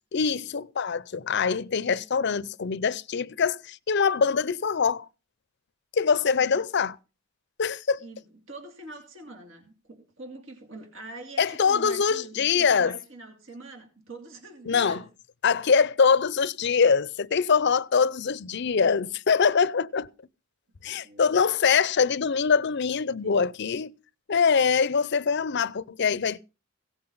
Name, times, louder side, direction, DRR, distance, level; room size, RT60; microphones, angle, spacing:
voice 1, 0.1-5.1 5.9-7.0 7.6-8.0 11.4-12.9 14.7-15.0 15.4-20.1 20.8-23.9 24.3-26.4, left 6 dB, 55° left, 0.6 m, -23 dB
voice 2, 8.0-15.0 20.7-21.2 21.6-21.7 23.2-23.4, right 2 dB, 70° right, 2.8 m, -44 dB
17.0 x 7.8 x 5.5 m
head